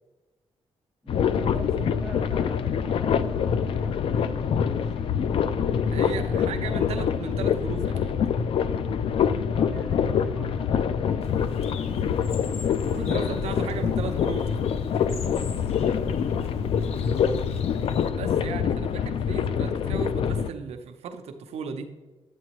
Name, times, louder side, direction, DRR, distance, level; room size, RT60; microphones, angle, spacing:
voice 1, 1.0-5.1 5.9-6.7 9.4-14.3 16.3-16.9, right 1 dB, 5° left, -2 dB, 2.1 m, -45 dB
sound 1, 1.1-20.5, left 7 dB, 60° left, 0.4 m, -25 dB
voice 2, 5.9-8.2 12.8-14.4 18.1-21.9, right 5 dB, 80° right, 6 dB, 0.8 m, -36 dB
Bird, 11.2-18.1, left 3 dB, 75° left, 0.9 m, -43 dB
9.5 x 8.6 x 3.0 m, 1.2 s
cardioid pair, 135°, 11 cm